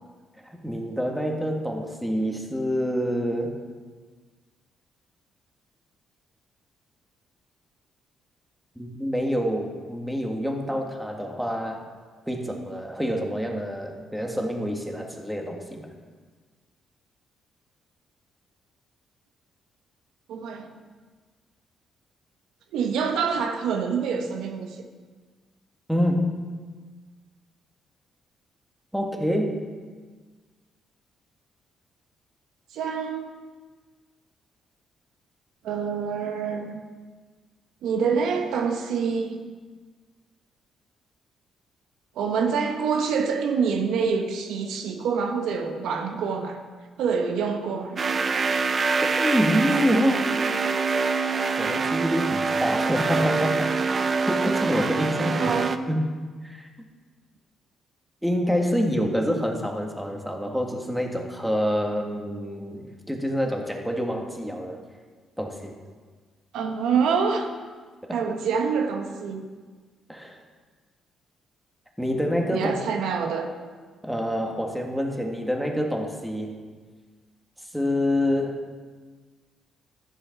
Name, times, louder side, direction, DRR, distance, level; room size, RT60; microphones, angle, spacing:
voice 1, 0.4-3.6 8.8-11.8 12.3-15.9 25.9-26.4 28.9-29.6 49.0-50.3 51.6-53.7 54.3-55.4 55.9-56.1 56.4-56.7 58.2-64.8 65.4-65.7 68.0-68.4 70.1-70.4 72.0-72.7 74.0-76.6 77.7-78.6, equal, ahead, 1 dB, 1.8 m, -27 dB
voice 2, 20.3-20.7 22.7-24.8 32.7-33.3 35.6-36.9 37.8-39.4 42.1-46.6 47.0-48.0 55.1-55.9 66.5-67.5 68.1-69.4 72.5-73.5, right 6 dB, 85° right, 4 dB, 1.2 m, -26 dB
sound 1, 48.0-55.8, right 4 dB, 40° right, 0.6 m, -25 dB
13.0 x 7.7 x 6.0 m, 1.5 s
cardioid pair, 90°, 0 cm